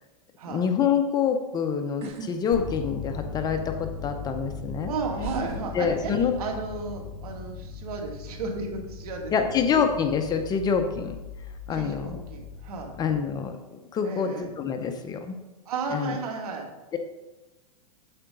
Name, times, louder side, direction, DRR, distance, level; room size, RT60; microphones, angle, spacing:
voice 1, 0.5-4.9 5.7-6.3 9.3-11.2 11.7-12.2 13.0-13.5 13.9-15.3 15.9-16.1 16.9-17.0, left 7 dB, 20° left, 6 dB, 0.7 m, -26 dB
sound 1, 2.0-2.3 2.7-3.3 4.3-4.4 5.2-6.6 6.9-7.3, right 5 dB, 35° right, 1.1 m, -39 dB
sound 2, 2.5-13.5, left 5 dB, 80° left, 2.7 m, -39 dB
voice 2, 4.9-9.6 11.7-13.0 14.0-14.5 15.7-16.7, right 4 dB, 75° right, 1 dB, 2.3 m, -34 dB
8.7 x 7.9 x 3.8 m, 1.1 s
supercardioid pair, 140°, 19 cm